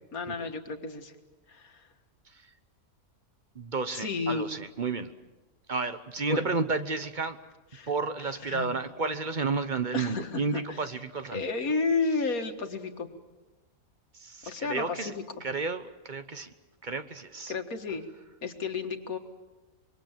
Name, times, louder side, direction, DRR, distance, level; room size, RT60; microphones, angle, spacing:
voice 1, 0.1-1.1 1.5-1.8 3.9-4.5 6.3-6.5 7.7-7.9 8.4-8.8 9.9-10.9 11.3-13.1 14.5-15.2 17.5-18.0 18.4-19.2, left 4 dB, 80° left, 6 dB, 2.2 m, -32 dB
voice 2, 3.5-5.1 5.7-7.4 7.9-11.4 14.2-15.1 15.4-16.5 16.8-17.5, right 4 dB, 35° right, 10 dB, 1.1 m, -31 dB
25.5 x 23.0 x 7.4 m, 1.2 s
omnidirectional pair, 1.5 m